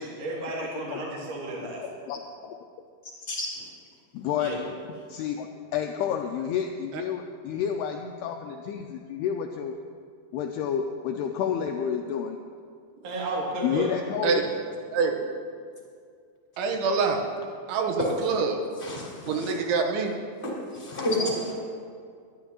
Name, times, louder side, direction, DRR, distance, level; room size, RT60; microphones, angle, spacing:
voice 1, 0.0-1.8 4.4-4.6 13.0-13.9, right 2 dB, 40° right, -4 dB, 3.0 m, -32 dB
voice 2, 0.6-1.0 2.1-2.6 4.1-4.7 5.1-9.8 10.3-12.4 13.6-14.4 16.6-16.8 17.8-17.9 18.5-18.6 19.3-20.1, left 8 dB, 85° left, 4 dB, 2.3 m, -30 dB
voice 3, 16.6-17.2 17.7-18.6 19.3-20.1, right 5 dB, 85° right, 3 dB, 3.4 m, -25 dB
voice 4, 18.8-19.5 20.4-21.5, left 1 dB, 15° left, -5 dB, 3.1 m, -30 dB
20.5 x 12.5 x 2.9 m, 2.3 s
omnidirectional pair, 5.2 m